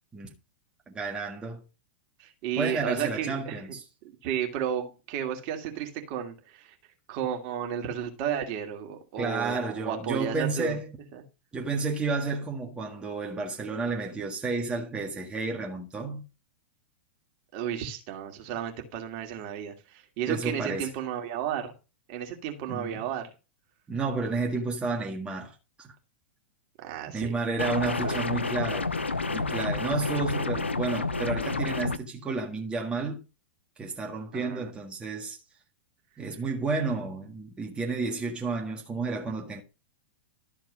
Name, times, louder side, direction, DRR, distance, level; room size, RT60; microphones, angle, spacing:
voice 1, 0.9-1.6 2.6-3.8 9.2-10.9 11.5-16.2 20.3-20.9 22.7-23.0 23.9-25.9 27.1-28.9 29.3-33.2 33.8-35.4 36.2-39.6, right 3 dB, 15° right, 1.7 m, -31 dB
voice 2, 2.2-3.5 4.0-6.7 7.1-10.7 11.1-11.2 17.5-21.7 22.1-23.3 26.8-27.4 27.8-28.2 30.1-30.4 34.3-34.7, right 9 dB, 45° right, 2.5 m, -33 dB
sound 1, 27.6-32.0, left 3 dB, 85° left, 0.7 m, -29 dB
13.0 x 4.6 x 5.2 m
figure-of-eight pair, 100°, 6 cm